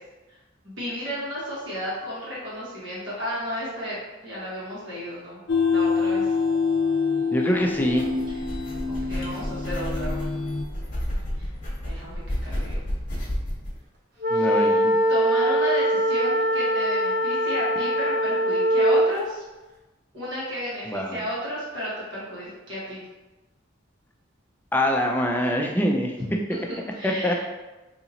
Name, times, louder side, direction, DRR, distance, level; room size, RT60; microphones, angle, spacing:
voice 1, 0.6-5.4 5.7-6.3 8.3-8.4 8.9-10.2 11.4-11.5 11.8-12.9 14.3-14.8 15.1-19.4 20.1-23.0 26.2-27.4, equal, 75° right, -8 dB, 1.4 m, -33 dB
sound 1, 5.5-10.6, left 5 dB, 85° left, 0.5 m, -25 dB
voice 2, 7.3-8.1 14.3-15.0 20.9-21.2 24.7-26.2 27.0-27.4, equal, 10° left, 1 dB, 0.3 m, -24 dB
sound 2, 7.6-13.7, equal, 45° left, 1.0 m, -31 dB
sound 3, 14.2-19.1, equal, 55° right, 0.8 m, -22 dB
4.0 x 2.8 x 2.8 m, 1.1 s
head